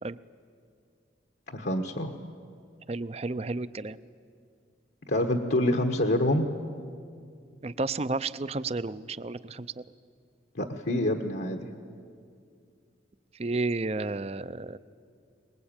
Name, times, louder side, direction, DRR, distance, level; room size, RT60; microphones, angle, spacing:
voice 1, 1.5-2.1 5.1-6.5 10.5-11.7, left 1 dB, 70° left, 3 dB, 1.3 m, -26 dB
voice 2, 2.9-4.0 7.6-9.7 13.4-14.8, right 3 dB, 35° right, 16 dB, 0.5 m, -32 dB
23.5 x 20.5 x 8.9 m, 2.3 s
head